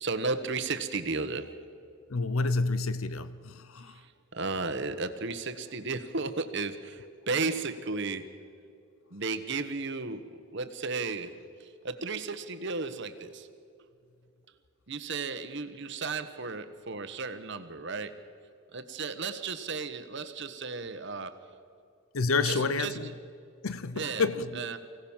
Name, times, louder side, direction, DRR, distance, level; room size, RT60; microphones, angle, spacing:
voice 1, 0.0-1.6 3.9-8.3 9.1-13.5 14.9-18.2 18.7-21.4 22.4-23.1 23.9-24.3 24.5-24.8, right 4 dB, 55° right, 1.3 m, -34 dB
voice 2, 2.1-4.0 22.1-23.1 23.6-24.8, left 3 dB, 80° left, 0.8 m, -29 dB
24.5 x 17.0 x 7.3 m
head